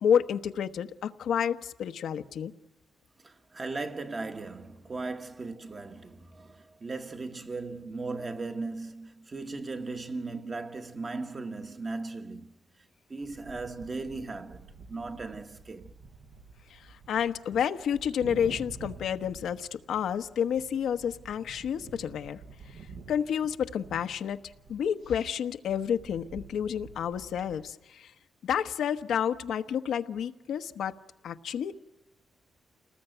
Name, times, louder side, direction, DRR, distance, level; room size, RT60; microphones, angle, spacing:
voice 1, 0.0-2.5 16.7-22.4 23.1-24.4 24.7-28.1 28.4-30.9 31.2-31.7, left 8 dB, 75° left, 1.1 m, -30 dB
voice 2, 3.2-12.5 13.1-15.9, right 3 dB, 25° right, 1.3 m, -37 dB
sound 1, 13.2-27.6, right 4 dB, 90° right, 5.3 m, -49 dB
29.0 x 20.0 x 9.1 m
wide cardioid pair, 155°, 0 cm